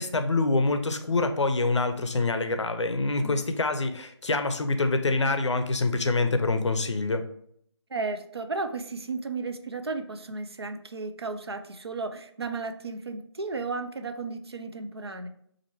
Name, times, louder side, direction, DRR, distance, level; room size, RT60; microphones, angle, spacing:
voice 1, 0.0-7.2, left 3 dB, 75° left, 8 dB, 0.5 m, -26 dB
voice 2, 7.9-15.3, right 3 dB, 60° right, 7 dB, 0.4 m, -34 dB
4.2 x 2.5 x 3.1 m, 0.67 s
figure-of-eight pair, 175°, 15 cm